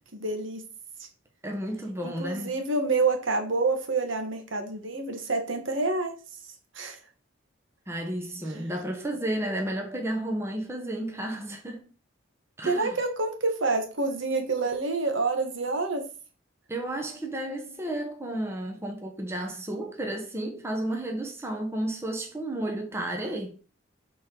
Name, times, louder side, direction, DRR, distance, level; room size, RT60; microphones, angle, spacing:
voice 1, 0.1-0.6 2.0-6.1 6.7-7.0 12.7-16.0, right 3 dB, 70° right, 1.5 m, -27 dB
voice 2, 1.4-2.6 7.9-11.9 12.6-13.0 16.7-23.5, right 1 dB, 15° right, 0.9 m, -32 dB
7.2 x 3.8 x 4.5 m
head